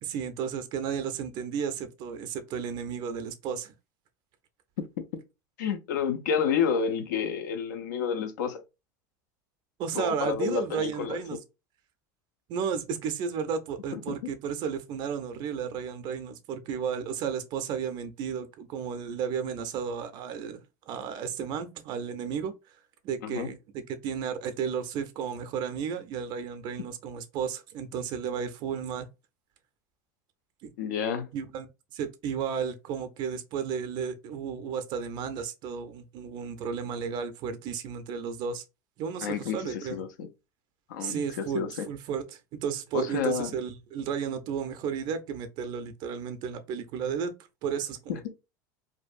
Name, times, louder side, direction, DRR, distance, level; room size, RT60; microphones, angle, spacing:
voice 1, 0.0-3.7 9.8-11.4 12.5-20.6 20.9-22.5 23.0-29.1 30.6-30.7 31.3-38.6 39.0-40.0 41.0-47.3 47.6-48.3, right 7 dB, 50° right, 0.4 m, -33 dB
voice 2, 5.6-8.6 9.9-11.2 13.9-14.1 23.2-23.5 30.8-31.3 39.2-40.3 40.9-41.9 42.9-43.5 48.1-48.3, left 7 dB, 85° left, 0.5 m, -30 dB
2.6 x 2.2 x 2.4 m
supercardioid pair, 100°, 10 cm